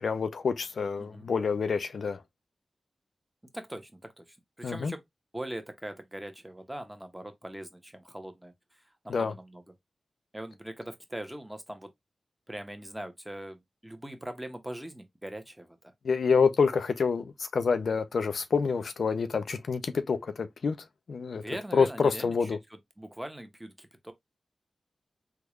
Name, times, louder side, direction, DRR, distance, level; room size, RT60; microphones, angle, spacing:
voice 1, 0.0-2.2 4.6-4.9 9.1-9.3 16.0-21.4 21.7-22.6, left 5 dB, 80° left, 0.4 m, -27 dB
voice 2, 3.5-5.0 5.3-8.5 9.0-9.6 10.3-11.9 12.5-15.9 21.3-22.5 23.0-24.1, right 1 dB, 10° right, 1.0 m, -41 dB
3.5 x 2.3 x 3.1 m
cardioid pair, 45°, 0 cm